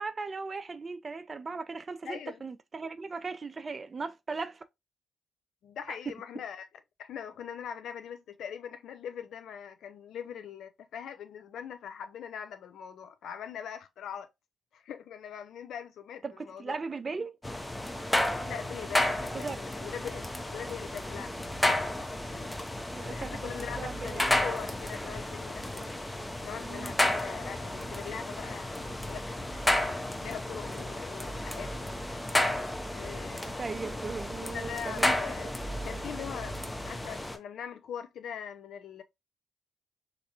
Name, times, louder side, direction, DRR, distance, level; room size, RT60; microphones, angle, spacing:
voice 1, 0.0-4.6 5.9-6.1 16.2-17.4 19.4-19.6 22.9-24.4 26.6-26.9 33.4-35.1, right 4 dB, 40° right, 0.4 m, -38 dB
voice 2, 2.1-2.4 5.6-6.7 7.0-14.3 14.7-16.8 18.5-21.3 21.6-21.8 22.2-22.6 23.0-26.0 26.4-29.8 30.2-31.9 32.9-33.5 34.4-35.5 35.8-36.6 36.9-39.0, left 8 dB, 65° left, 0.4 m, -42 dB
sound 1, 17.4-37.4, left 1 dB, 15° left, 0.6 m, -32 dB
3.1 x 2.5 x 2.8 m
hypercardioid pair, 40°, 0 cm